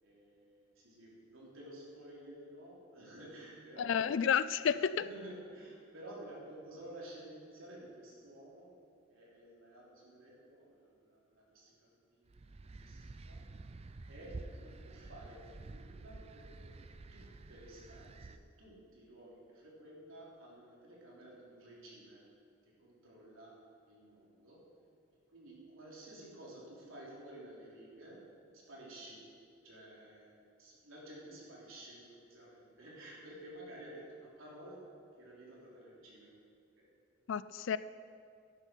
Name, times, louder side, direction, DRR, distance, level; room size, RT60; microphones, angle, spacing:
voice 1, 0.0-4.3 4.6-8.7 9.1-12.5 12.8-13.4 14.1-16.8 17.1-22.3 22.8-24.6 25.3-29.3 29.6-36.3 36.8-36.9 37.2-37.4, right 1 dB, 85° right, -5 dB, 3.6 m, -52 dB
voice 2, 3.8-5.0 37.3-37.8, left 7 dB, 65° left, 16 dB, 0.4 m, -31 dB
sound 1, 12.3-18.4, right 3 dB, 30° right, 0.4 m, -50 dB
12.0 x 10.5 x 4.6 m, 2.3 s
head